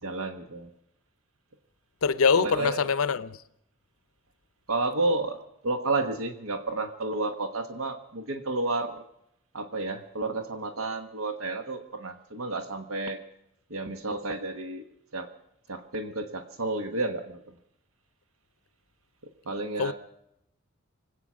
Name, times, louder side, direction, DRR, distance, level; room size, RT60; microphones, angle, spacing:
voice 1, 0.0-0.7 2.4-2.9 4.7-5.4 5.6-9.0 9.5-13.2 13.7-14.8 15.1-15.3 15.7-17.4 19.5-19.9, right 2 dB, 85° right, 1.3 m, -31 dB
voice 2, 2.0-3.4 19.8-19.9, left 5 dB, 85° left, 0.7 m, -24 dB
25.5 x 8.8 x 6.2 m
head